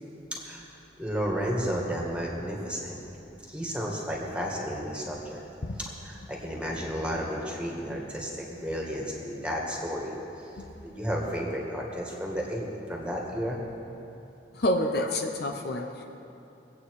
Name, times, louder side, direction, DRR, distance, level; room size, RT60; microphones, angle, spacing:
voice 1, 0.3-0.6 1.0-3.0 3.5-5.4 5.8-10.1 10.8-13.6, equal, 5° right, -2 dB, 2.1 m, -32 dB
voice 2, 14.5-16.0, left 1 dB, 60° left, 4 dB, 0.9 m, -28 dB
23.0 x 8.6 x 4.9 m, 2.9 s
head